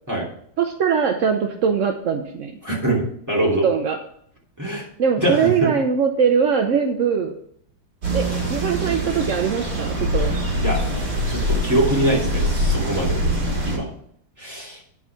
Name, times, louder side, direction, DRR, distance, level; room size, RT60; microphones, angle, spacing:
voice 1, 0.6-2.5 3.4-4.0 5.0-7.4 8.1-10.4, right 6 dB, 65° right, 5 dB, 0.7 m, -21 dB
voice 2, 2.6-3.7 4.6-4.9 5.2-5.7 10.1-10.3 10.6-10.8 11.3-13.2 13.6-13.9 14.4-14.8, right 1 dB, 10° right, -4 dB, 2.6 m, -23 dB
sound 1, 8.0-13.8, equal, 50° right, 3.2 m, -23 dB
9.8 x 4.8 x 5.8 m, 0.66 s
omnidirectional pair, 2.1 m